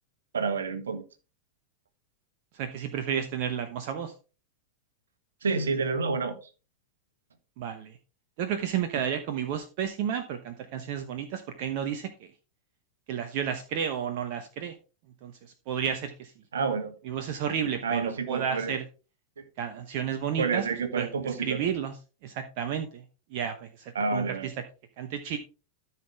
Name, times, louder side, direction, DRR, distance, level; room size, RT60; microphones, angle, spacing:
voice 1, 0.3-1.0 5.4-6.4 16.5-16.9 17.8-18.7 19.4-19.5 20.4-21.6 23.9-24.5, right 4 dB, 70° right, 1.5 m, -29 dB
voice 2, 2.5-4.1 7.6-8.0 8.4-12.3 13.1-14.8 15.2-16.3 17.0-18.8 19.6-20.7 20.9-22.0 22.2-23.0 23.3-24.5 25.0-25.4, right 8 dB, 45° right, 1.0 m, -32 dB
13.5 x 5.9 x 3.4 m
figure-of-eight pair, 90°, 0 cm